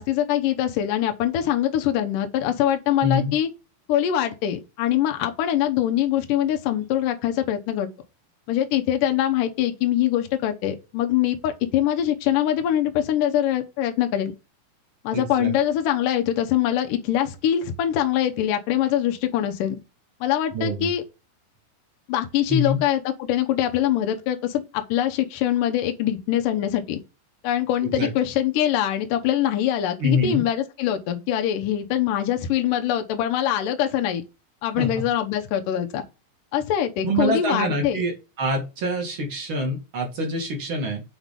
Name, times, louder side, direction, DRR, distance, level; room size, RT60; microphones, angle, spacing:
voice 1, 0.0-3.5 3.9-7.9 8.5-14.3 15.0-19.8 20.2-21.0 22.1-27.0 27.4-34.2 34.6-36.0 36.5-38.0, left 11 dB, 80° left, 1.9 m, -23 dB
voice 2, 3.0-3.3 15.1-15.5 20.5-20.9 22.5-22.8 27.8-28.1 30.0-30.4 34.8-34.9 37.0-41.0, equal, 40° right, 2.0 m, -25 dB
7.9 x 4.2 x 5.2 m
omnidirectional pair, 5.2 m